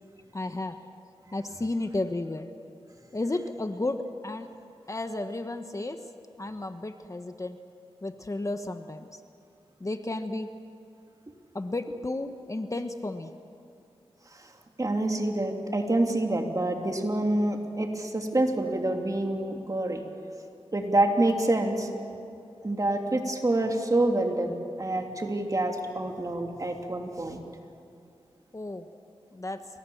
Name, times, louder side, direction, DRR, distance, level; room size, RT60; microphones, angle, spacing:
voice 1, 0.3-0.8 1.3-2.5 3.1-4.0 4.2-4.5 4.9-6.0 6.4-7.6 8.0-9.2 9.8-10.5 11.5-13.3 28.5-28.9 29.3-29.6, left 2 dB, 30° left, 8 dB, 1.2 m, -32 dB
voice 2, 14.8-20.0 20.7-21.9 22.6-27.4, right 1 dB, 35° right, 3 dB, 3.1 m, -27 dB
29.0 x 23.5 x 7.3 m, 2.5 s
wide cardioid pair, 70°, 11 cm